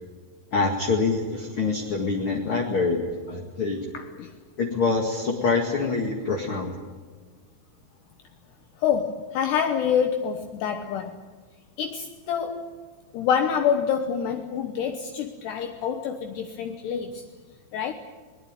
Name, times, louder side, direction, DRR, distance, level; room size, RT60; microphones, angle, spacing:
voice 1, 0.5-3.0 3.3-3.8 4.6-6.7, left 4 dB, 45° left, 1 dB, 1.7 m, -25 dB
voice 2, 3.9-4.3 8.8-11.2 11.8-12.7 13.1-17.3 17.7-17.9, left 7 dB, 70° left, 6 dB, 2.9 m, -26 dB
22.0 x 20.0 x 9.0 m, 1.5 s
omnidirectional pair, 5.5 m